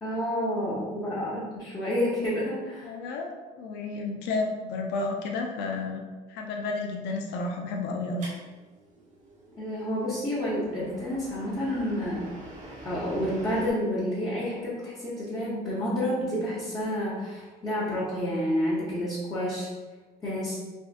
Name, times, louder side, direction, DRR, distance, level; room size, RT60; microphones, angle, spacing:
voice 1, 0.0-2.9 9.6-12.3 12.8-19.7 20.2-20.6, equal, 20° left, -11 dB, 1.0 m, -29 dB
voice 2, 2.8-6.0 6.3-8.3, left 3 dB, 90° left, 2 dB, 0.5 m, -31 dB
sound 1, 8.2-13.7, right 1 dB, 45° right, 0.8 m, -46 dB
3.5 x 2.5 x 2.5 m, 1.3 s
cardioid pair, 110°, 17 cm